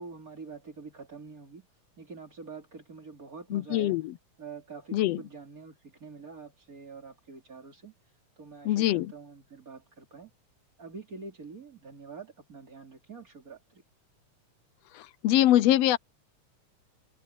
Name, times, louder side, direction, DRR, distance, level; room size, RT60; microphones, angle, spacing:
voice 1, 0.0-1.7 2.0-4.0 4.4-7.9 8.4-10.3 10.8-13.8, right 4 dB, 30° right, 3.0 m, -46 dB
voice 2, 3.5-4.1 4.9-5.2 8.6-9.1 14.9-16.0, left 13 dB, 75° left, 1.5 m, -24 dB
omnidirectional pair, 3.4 m